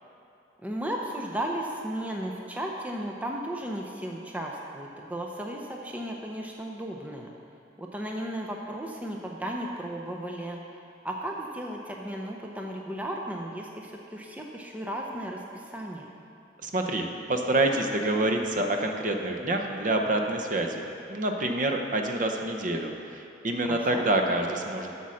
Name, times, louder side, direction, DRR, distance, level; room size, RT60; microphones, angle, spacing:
voice 1, 0.6-7.3 7.8-16.1 23.6-24.1, right 1 dB, 10° right, 0 dB, 0.6 m, -35 dB
voice 2, 16.6-22.9 23.4-24.9, right 2 dB, 45° right, 3 dB, 0.7 m, -27 dB
8.3 x 7.1 x 6.3 m, 2.7 s
head